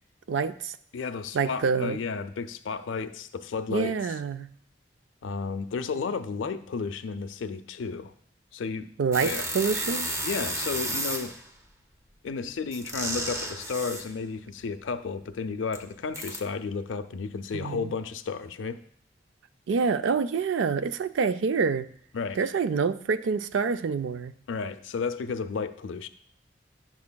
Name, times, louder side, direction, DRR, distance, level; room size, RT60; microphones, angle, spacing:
voice 1, 0.3-0.8 1.3-2.0 3.7-4.5 9.0-10.1 17.5-17.9 19.7-21.9 22.4-24.3, right 5 dB, 80° right, 12 dB, 0.4 m, -27 dB
voice 2, 0.9-4.0 5.2-8.1 8.5-8.9 9.2-9.4 10.2-11.3 12.2-18.8 22.1-22.4 24.5-26.1, left 5 dB, 85° left, 11 dB, 0.4 m, -32 dB
sound 1, 9.1-11.5 12.7-14.1 15.7-15.8 16.1-16.4, right 1 dB, 15° right, 0.5 m, -32 dB
9.4 x 6.1 x 2.2 m, 0.63 s
head